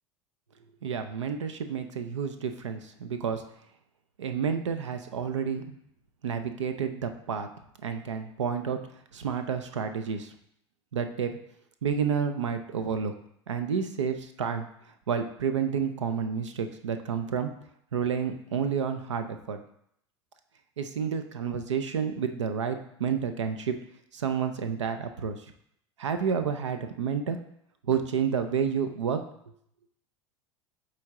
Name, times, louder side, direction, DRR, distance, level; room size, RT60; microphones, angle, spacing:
voice 1, 0.8-3.4 4.2-5.8 6.2-7.5 7.8-8.8 9.1-10.3 10.9-11.3 11.8-13.1 13.5-14.6 15.1-17.5 17.9-19.6 20.8-23.7 24.1-25.4 26.0-27.4 27.8-29.2, right 7 dB, 90° right, 7 dB, 0.5 m, -30 dB
8.4 x 3.2 x 3.6 m, 0.72 s
hypercardioid pair, 85°, 15 cm